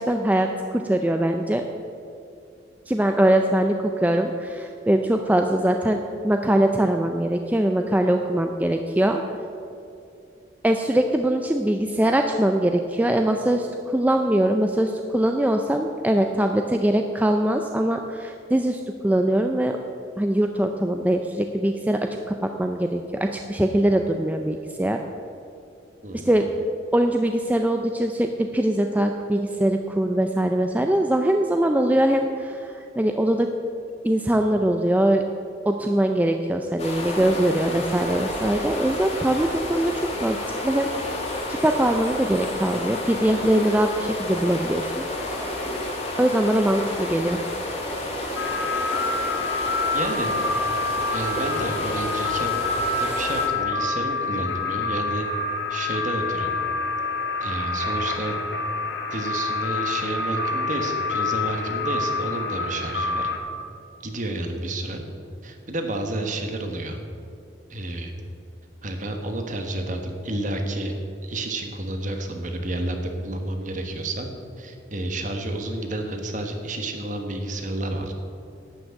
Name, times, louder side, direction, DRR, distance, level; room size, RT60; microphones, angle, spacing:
voice 1, 0.0-1.6 2.9-9.2 10.6-19.8 20.2-22.0 22.3-25.0 26.3-26.5 26.9-33.5 34.0-35.2 35.7-39.9 40.2-40.4 40.6-40.9 41.3-45.1 46.2-47.4, right 1 dB, 10° right, 4 dB, 0.4 m, -22 dB
sound 1, 36.8-53.5, left 1 dB, 35° left, 1.9 m, -30 dB
sound 2, 48.4-63.4, left 3 dB, 60° left, 1.4 m, -27 dB
voice 2, 49.9-50.6 51.0-52.6 53.0-55.2 55.7-56.5 57.4-58.4 59.1-63.3 64.0-65.0 65.4-67.0 67.7-68.1 68.8-70.9 71.2-74.3 74.6-78.1, right 1 dB, 40° right, 4 dB, 1.2 m, -30 dB
11.5 x 6.1 x 8.6 m, 2.6 s
head